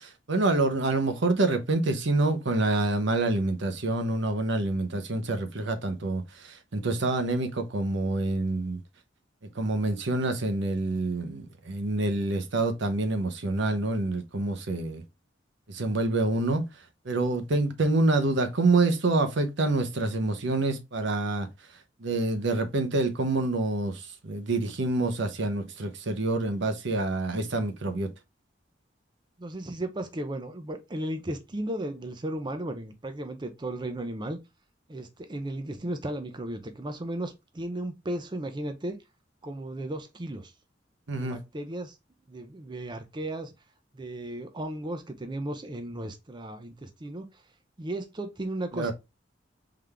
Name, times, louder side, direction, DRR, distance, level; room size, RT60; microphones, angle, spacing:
voice 1, 0.0-8.8 9.6-15.0 15.7-16.7 17.0-21.5 22.0-28.1 41.1-41.4 48.7-48.9, right 2 dB, 70° right, 0.8 m, -27 dB
voice 2, 29.4-34.4 34.9-39.0 39.4-40.5 41.2-42.0 42.3-43.5 43.9-47.4 47.8-48.9, right 1 dB, 25° right, 0.6 m, -35 dB
3.7 x 3.5 x 3.3 m
head